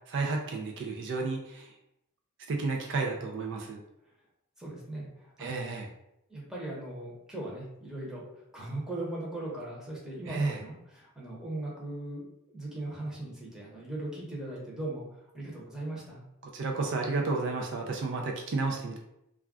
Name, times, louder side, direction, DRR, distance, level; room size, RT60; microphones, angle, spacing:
voice 1, 0.1-1.7 2.5-3.8 5.4-5.9 10.3-10.6 16.5-19.0, right 3 dB, 55° right, 2 dB, 0.4 m, -32 dB
voice 2, 4.6-5.7 6.3-8.2 8.5-12.2 12.5-16.2, right 1 dB, 5° right, -5 dB, 0.8 m, -39 dB
2.3 x 2.2 x 3.5 m, 0.83 s
head